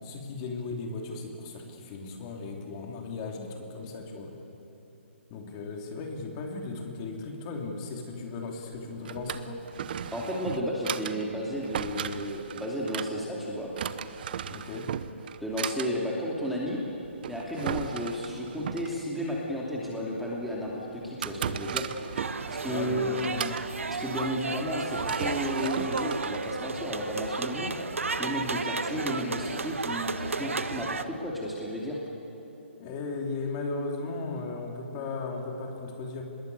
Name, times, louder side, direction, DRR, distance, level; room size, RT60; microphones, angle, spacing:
voice 1, 0.0-4.3 5.3-9.6 14.5-14.9 22.6-23.6 32.8-36.2, left 3 dB, 30° left, 1 dB, 3.2 m, -36 dB
Drawer open or close, 8.7-27.3, right 8 dB, 45° right, 1.0 m, -38 dB
voice 2, 10.1-13.7 15.4-16.8 17.3-21.8 22.5-23.1 23.9-27.7 28.2-32.0, equal, ahead, -4 dB, 2.8 m, -33 dB
sound 1, 22.2-31.0, right 4 dB, 85° right, 1.4 m, -33 dB
26.0 x 21.0 x 8.2 m, 2.9 s
hypercardioid pair, 150°, 7 cm